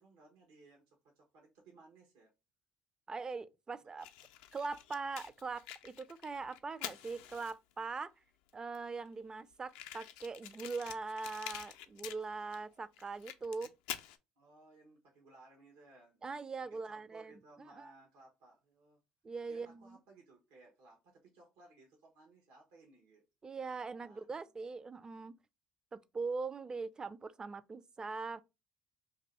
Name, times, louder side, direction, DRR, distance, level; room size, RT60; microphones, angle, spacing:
voice 1, 0.0-2.3 3.9-4.1 14.4-16.3 16.6-19.0 19.5-23.2 24.0-24.5, right 3 dB, 80° right, 1.0 m, -61 dB
voice 2, 3.1-4.1 4.5-8.1 8.5-13.7 16.2-17.9 19.2-20.0 23.4-25.3 25.9-28.4, right 4 dB, 25° right, 0.4 m, -41 dB
Fire, 4.0-7.8 8.5-8.6 8.7-8.8 9.1-9.2 9.7-12.6 12.9-14.2, left 11 dB, 85° left, 0.4 m, -47 dB
2.7 x 2.6 x 4.0 m
supercardioid pair, 80°, 3 cm